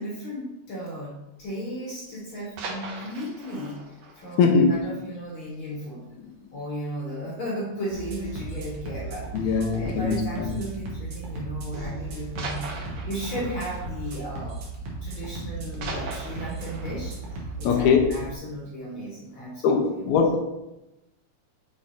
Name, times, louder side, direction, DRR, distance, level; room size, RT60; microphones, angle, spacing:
voice 1, 0.0-6.1 6.5-12.7 13.0-14.6 15.0-17.2 17.6-20.2, equal, 50° left, 1.8 m, -35 dB
sound 1, 2.3-5.9 6.2-6.3 6.7-6.9 7.2-7.3 8.1-8.6 9.8-10.0 10.9-11.0 12.4-15.2 15.4-18.5 19.0-19.1, right 3 dB, 80° right, 1.0 m, -41 dB
voice 2, 4.4-4.8 9.3-10.5 17.6-18.0 19.6-20.4, left 5 dB, 75° left, 2.1 m, -21 dB
sound 2, 7.9-18.3, right 2 dB, 60° right, 2.2 m, -36 dB
6.3 x 4.5 x 4.1 m
omnidirectional pair, 3.5 m